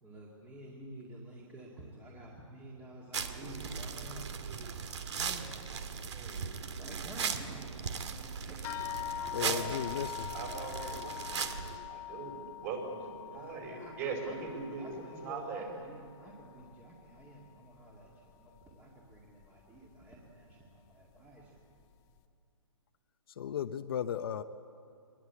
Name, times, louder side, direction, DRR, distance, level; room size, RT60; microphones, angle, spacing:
voice 1, 0.0-6.0 6.8-8.9 9.5-9.8 13.2-21.6, right 1 dB, 10° right, -3 dB, 2.2 m, -50 dB
sound 1, 3.1-11.8, right 6 dB, 60° right, 1.9 m, -38 dB
voice 2, 6.1-6.4 9.4-15.7, right 4 dB, 30° right, 3 dB, 5.3 m, -41 dB
sound 2, 8.6-17.5 17.8-18.7 19.4-19.5 19.9-20.1, left 13 dB, 20° left, 0.9 m, -44 dB
voice 3, 9.3-10.3 23.4-24.4, left 9 dB, 50° left, 8 dB, 0.9 m, -35 dB
24.0 x 21.0 x 8.4 m, 2.4 s
hypercardioid pair, 160°, 16 cm